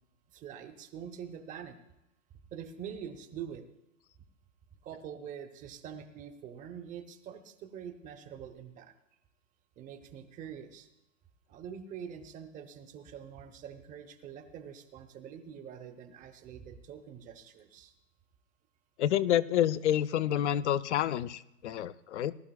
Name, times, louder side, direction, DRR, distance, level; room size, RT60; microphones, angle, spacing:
voice 1, 0.3-1.8 2.5-3.6 4.8-8.9 9.8-10.9 11.5-17.9, right 8 dB, 20° right, 8 dB, 0.8 m, -45 dB
voice 2, 19.0-22.3, left 11 dB, 60° left, 15 dB, 0.6 m, -28 dB
19.5 x 11.5 x 2.3 m, 0.86 s
hypercardioid pair, 125°, 40 cm